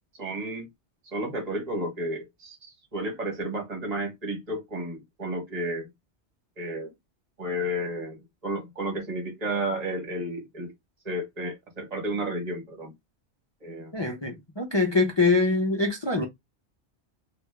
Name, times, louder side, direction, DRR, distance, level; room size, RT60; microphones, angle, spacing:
voice 1, 0.2-0.7 1.1-5.9 6.6-6.9 7.4-10.7 11.0-12.9 13.6-14.0, right 1 dB, 35° right, 1.2 m, -32 dB
voice 2, 13.9-16.3, left 3 dB, 30° left, 0.6 m, -24 dB
3.4 x 2.4 x 3.2 m
omnidirectional pair, 1.1 m